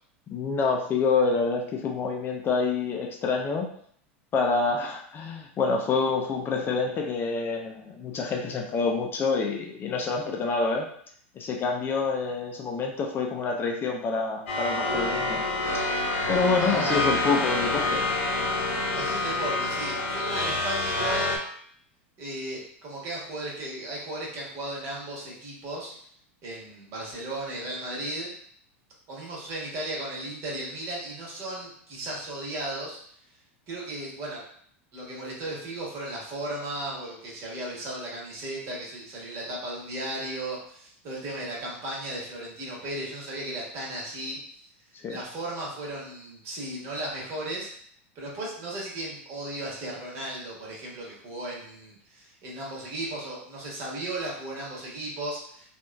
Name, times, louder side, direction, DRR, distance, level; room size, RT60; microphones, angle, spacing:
voice 1, 0.3-3.7 4.3-10.9 11.4-15.4 16.3-18.0 45.0-45.2, left 4 dB, 30° left, 1 dB, 0.5 m, -27 dB
sound 1, 14.5-21.4, left 2 dB, 70° left, 0.8 m, -27 dB
voice 2, 16.6-17.1 18.9-21.3 22.2-26.0 26.4-28.3 29.1-33.0 33.7-34.4 34.9-44.4 45.1-47.7 48.1-55.7, right 1 dB, 45° right, -4 dB, 1.3 m, -35 dB
3.0 x 2.4 x 2.2 m, 0.62 s
hypercardioid pair, 95°, 7 cm